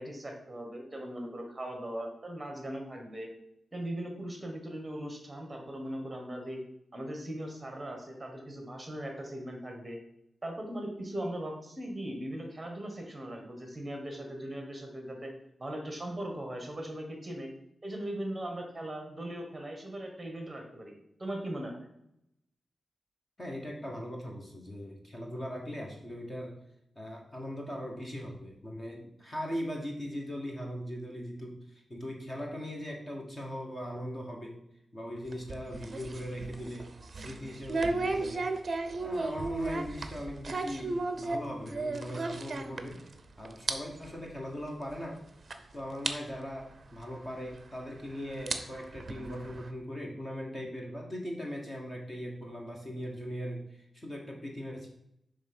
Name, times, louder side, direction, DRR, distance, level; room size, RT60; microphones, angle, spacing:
voice 1, 0.0-3.3 3.7-6.6 6.9-10.0 10.4-15.3 15.6-17.5 17.8-20.9 21.2-21.9, right 1 dB, 15° right, 2 dB, 1.3 m, -39 dB
voice 2, 23.4-26.6 26.9-34.6 34.9-38.5 39.0-43.0 43.4-45.2 45.7-54.9, equal, 20° left, 0 dB, 1.1 m, -40 dB
sound 1, 35.3-43.2 43.5-43.7 44.1-44.2 44.9-45.0 45.5-45.6 46.1-46.2 47.5-47.6 48.3-49.7, right 3 dB, 35° right, 0.6 m, -34 dB
7.3 x 3.3 x 6.1 m, 0.78 s
wide cardioid pair, 170°, 0 cm